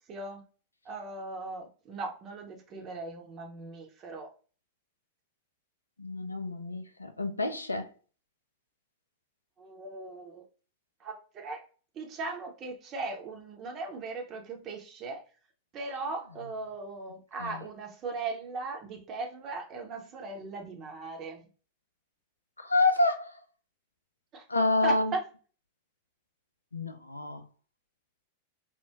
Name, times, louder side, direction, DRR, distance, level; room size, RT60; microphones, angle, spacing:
voice 1, 0.1-0.4 0.8-4.3 9.6-10.5 11.0-11.6 11.9-15.2 15.7-21.4 24.3-24.4 24.8-25.2, right 3 dB, 30° right, 0.7 m, -38 dB
voice 2, 6.0-7.9 17.4-17.6 22.6-23.4 24.5-25.1 26.7-27.4, left 2 dB, 80° left, 0.4 m, -28 dB
3.5 x 2.1 x 2.8 m
figure-of-eight pair, 90°, 0 cm